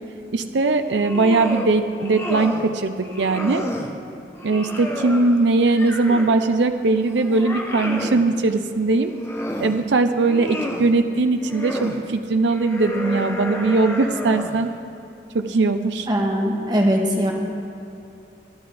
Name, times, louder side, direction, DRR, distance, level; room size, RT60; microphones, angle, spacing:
voice 1, 0.3-3.6 4.4-9.1 9.6-14.7 15.3-16.1, right 3 dB, 85° right, 7 dB, 0.6 m, -20 dB
sound 1, 0.8-1.7 2.0-2.7 3.0-3.9 4.4-6.4 6.9-8.3 8.9-9.8 10.2-10.9 11.4-12.0 12.5-14.7, left 1 dB, 15° left, 0.9 m, -31 dB
voice 2, 16.1-17.3, equal, 25° right, 0 dB, 1.4 m, -20 dB
23.5 x 10.5 x 3.5 m, 2.8 s
head